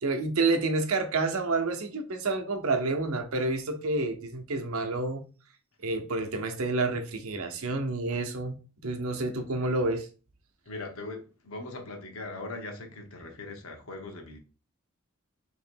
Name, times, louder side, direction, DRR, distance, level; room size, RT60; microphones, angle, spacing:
voice 1, 0.0-5.2 5.8-10.1, right 3 dB, 85° right, 0.7 m, -29 dB
voice 2, 10.7-14.4, left 2 dB, 80° left, 1.0 m, -40 dB
3.0 x 2.9 x 4.4 m
head